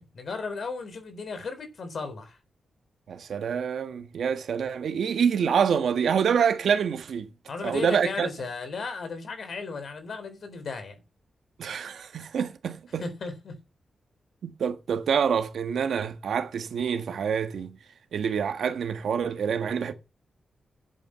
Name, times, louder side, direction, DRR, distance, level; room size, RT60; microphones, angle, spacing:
voice 1, 0.0-2.4 7.5-11.0 13.0-13.6, left 4 dB, 55° left, 3.9 m, -35 dB
voice 2, 3.1-7.3 7.6-8.3 11.6-13.0 14.4-17.8 18.1-19.9, right 7 dB, 80° right, 1.5 m, -26 dB
10.5 x 8.8 x 5.8 m
wide cardioid pair, 145°, 0 cm